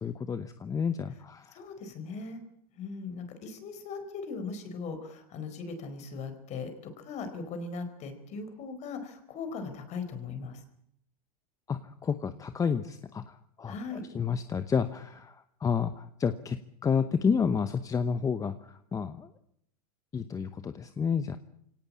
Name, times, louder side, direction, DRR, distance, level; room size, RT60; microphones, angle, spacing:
voice 1, 0.0-1.6 11.7-19.3 20.1-21.4, left 6 dB, 20° left, 11 dB, 0.9 m, -30 dB
voice 2, 1.5-2.4 2.8-10.6 13.7-14.0, left 4 dB, 40° left, 8 dB, 4.6 m, -39 dB
23.5 x 17.5 x 8.7 m, 0.72 s
supercardioid pair, 130°, 18 cm